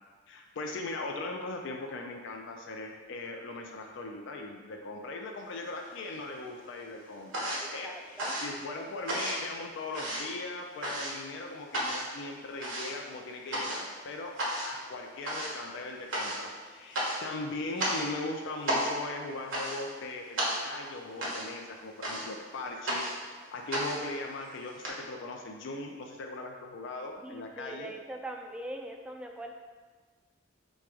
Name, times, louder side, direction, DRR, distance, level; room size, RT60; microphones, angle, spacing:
voice 1, 0.3-14.3 14.6-23.1 23.5-27.9, left 2 dB, 65° left, 2 dB, 0.4 m, -39 dB
sound 1, 5.5-6.3 6.6-24.9, right 1 dB, 75° right, 1.2 m, -35 dB
voice 2, 7.6-8.3 27.2-29.5, right 1 dB, 5° right, 2 dB, 0.3 m, -42 dB
3.4 x 3.1 x 4.8 m, 1.4 s
head